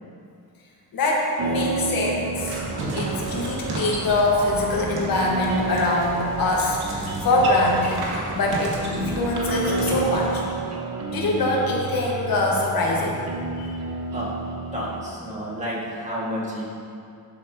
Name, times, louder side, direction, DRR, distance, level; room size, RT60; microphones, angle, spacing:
voice 1, 0.9-2.6 2.9-10.4 11.1-13.2 13.6-13.7, left 2 dB, 70° left, -2 dB, 1.5 m, -23 dB
sound 1, 1.4-15.1, right 3 dB, 45° right, 1.1 m, -31 dB
sound 2, 2.3-10.7, right 2 dB, 90° right, 1.7 m, -32 dB
voice 2, 14.7-16.6, equal, 20° right, -6 dB, 2.0 m, -30 dB
11.5 x 7.6 x 2.9 m, 2.4 s
wide cardioid pair, 135°, 37 cm